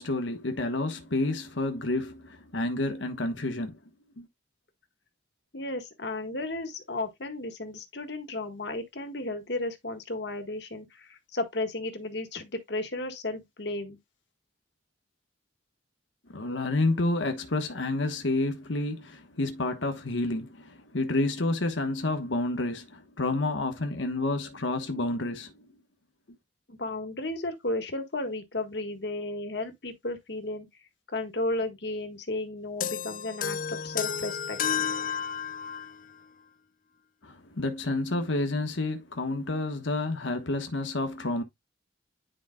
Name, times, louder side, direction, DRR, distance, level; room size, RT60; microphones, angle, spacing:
voice 1, 0.0-3.8 4.2-4.3 16.3-25.7 37.2-41.4, left 2 dB, 80° left, 1.3 m, -29 dB
voice 2, 5.5-14.0 26.7-30.7 31.1-34.6, left 2 dB, 60° left, 1.6 m, -34 dB
sound 1, 32.8-36.0, left 7 dB, 45° left, 0.6 m, -31 dB
10.0 x 5.1 x 2.3 m
head